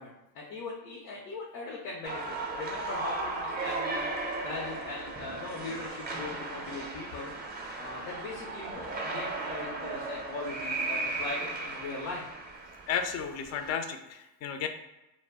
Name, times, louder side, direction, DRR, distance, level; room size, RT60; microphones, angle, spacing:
voice 1, 0.0-4.1 4.4-7.3 7.8-12.3, left 3 dB, 75° left, -2 dB, 0.8 m, -40 dB
sound 1, 2.0-13.7, right 3 dB, 20° right, 0.6 m, -36 dB
voice 2, 12.9-14.7, left 7 dB, 35° left, 6 dB, 0.4 m, -33 dB
2.2 x 2.0 x 3.4 m, 0.96 s
hypercardioid pair, 85°, 49 cm